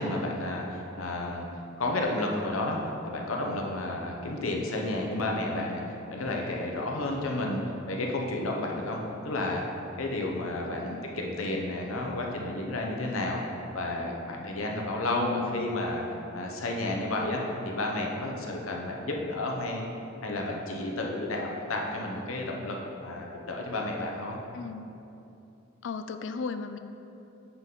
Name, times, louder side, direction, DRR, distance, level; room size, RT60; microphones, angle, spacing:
voice 1, 0.0-1.5 1.8-2.8 3.0-5.8 6.1-7.6 7.9-9.6 10.0-13.4 13.7-16.0 16.3-19.8 20.2-24.4, left 2 dB, 90° left, 0 dB, 0.8 m, -31 dB
voice 2, 15.2-15.7 24.5-24.9 25.8-26.8, left 5 dB, 60° left, 9 dB, 0.3 m, -36 dB
8.0 x 3.9 x 3.7 m, 2.8 s
head